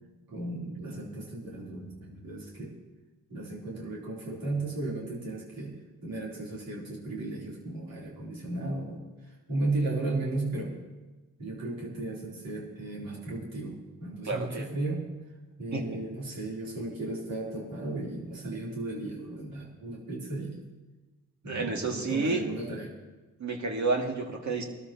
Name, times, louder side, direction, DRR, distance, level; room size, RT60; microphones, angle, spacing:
voice 1, 0.3-2.7 3.3-5.8 6.0-9.0 9.5-10.7 11.4-15.1 15.6-20.6 21.4-22.9, right 2 dB, 80° right, -4 dB, 3.7 m, -35 dB
voice 2, 14.2-14.7 15.7-16.0 21.5-22.4 23.4-24.6, right 3 dB, 55° right, 1 dB, 2.3 m, -30 dB
21.0 x 13.0 x 3.0 m, 1.2 s
hypercardioid pair, 40°, 34 cm